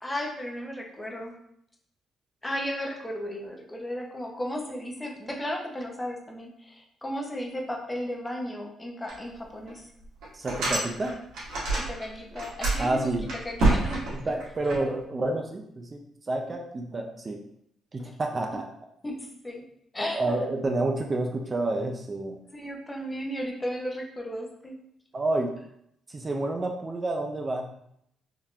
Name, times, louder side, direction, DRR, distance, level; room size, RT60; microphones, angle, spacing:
voice 1, 0.0-1.3 2.4-9.8 11.7-13.1 13.4-14.4 14.8-15.0 18.0-18.1 19.0-19.6 19.9-20.3 22.5-24.8, equal, 15° left, 1 dB, 0.7 m, -35 dB
sound 1, 9.1-9.2 9.7-9.8 10.2-12.0 12.3-14.8, right 2 dB, 85° right, 1.5 m, -27 dB
voice 2, 10.3-11.2 12.8-13.3 14.1-17.4 17.9-18.7 20.1-22.4 25.1-25.5 26.1-27.7, right 2 dB, 30° right, 2 dB, 0.4 m, -29 dB
3.6 x 2.8 x 2.4 m, 0.73 s
cardioid pair, 90°, 0 cm